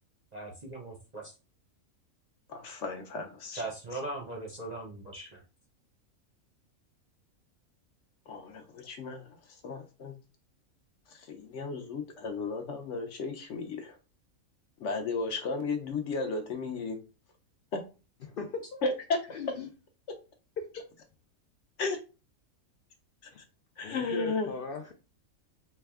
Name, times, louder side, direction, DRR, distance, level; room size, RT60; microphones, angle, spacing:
voice 1, 0.3-1.3 3.5-5.4, right 2 dB, 40° right, 0.6 m, -39 dB
voice 2, 2.5-3.6 8.3-9.3 9.6-10.1 11.1-13.9 14.8-17.0 17.7-17.8 18.8-19.2 21.8-22.0 23.2-23.3 23.8-24.5, left 3 dB, 60° left, 0.9 m, -34 dB
voice 3, 18.2-18.8 19.3-19.7 20.6-20.9 23.8-24.9, left 4 dB, 85° left, 0.4 m, -38 dB
4.1 x 2.2 x 3.4 m
omnidirectional pair, 1.5 m